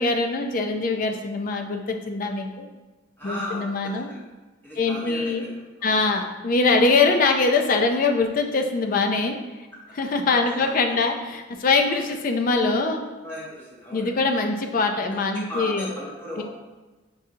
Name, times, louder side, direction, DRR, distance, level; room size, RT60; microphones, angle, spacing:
voice 1, 0.0-2.7 3.2-4.1 4.8-5.4 5.8-9.4 10.0-13.0 13.9-15.9 16.4-16.5, left 3 dB, 45° left, 4 dB, 0.4 m, -23 dB
voice 2, 3.2-4.2 4.6-5.5 5.8-6.1 10.5-11.1 11.8-12.1 13.2-14.1 15.1-16.4, equal, 10° left, -7 dB, 1.2 m, -37 dB
5.4 x 2.7 x 3.6 m, 1.2 s
head